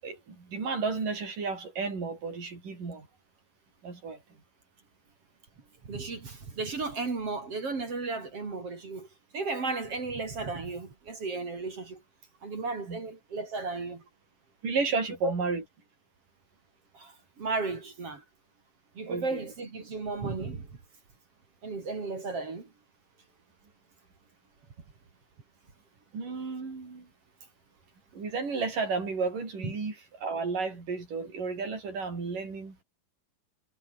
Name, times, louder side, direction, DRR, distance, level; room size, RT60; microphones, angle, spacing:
voice 1, 0.0-3.1 3.8-4.2 12.9-13.0 14.6-15.6 19.1-19.5 26.1-27.1 28.1-32.8, right 4 dB, 55° right, 8.3 m, -32 dB
voice 2, 5.9-9.1 9.3-12.0 12.4-14.0 15.2-15.3 16.9-18.2 19.0-20.7 21.6-22.7 29.6-29.7, right 3 dB, 40° right, 4.3 m, -34 dB
omnidirectional pair, 4.5 m